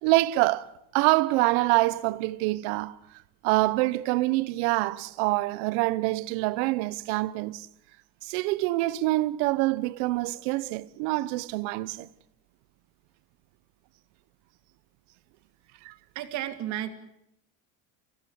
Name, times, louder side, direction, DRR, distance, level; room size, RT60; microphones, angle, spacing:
voice 1, 0.0-0.7 0.9-3.0 3.4-7.7 8.2-12.1 15.8-15.9, right 19 dB, 90° right, 1.0 m, -25 dB
voice 2, 16.1-16.9, right 12 dB, 55° right, 2.9 m, -32 dB
30.0 x 16.0 x 9.9 m
cardioid pair, 140°, 34 cm